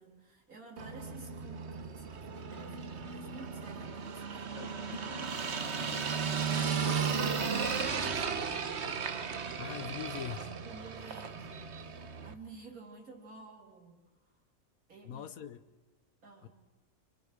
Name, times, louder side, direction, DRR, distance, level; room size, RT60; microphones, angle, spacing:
voice 1, 0.0-8.8 10.6-14.4 14.9-15.3 16.2-16.5, right 4 dB, 85° right, 4.0 m, -53 dB
sound 1, 0.8-12.3, right 6 dB, 55° right, 1.3 m, -35 dB
sound 2, 4.5-8.7, left 3 dB, 55° left, 1.8 m, -45 dB
voice 2, 9.6-10.6 15.0-15.6 16.4-16.5, left 9 dB, 80° left, 1.4 m, -41 dB
27.0 x 26.5 x 5.0 m
omnidirectional pair, 1.5 m